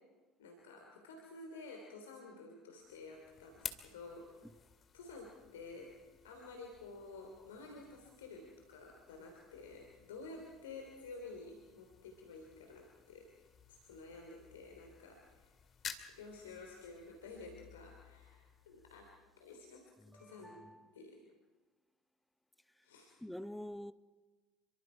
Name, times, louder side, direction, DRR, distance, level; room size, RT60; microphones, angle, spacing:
voice 1, 0.4-4.5 4.9-6.0 6.2-13.4 13.7-15.5 16.2-19.1 19.4-20.7 20.9-21.2 22.8-23.1, left 3 dB, 75° left, 3.4 m, -51 dB
sound 1, 2.8-19.7, left 7 dB, 35° left, 2.2 m, -54 dB
voice 2, 20.1-20.8 23.2-23.9, left 1 dB, 5° left, 1.0 m, -46 dB
28.5 x 24.0 x 4.8 m
figure-of-eight pair, 65°, 0 cm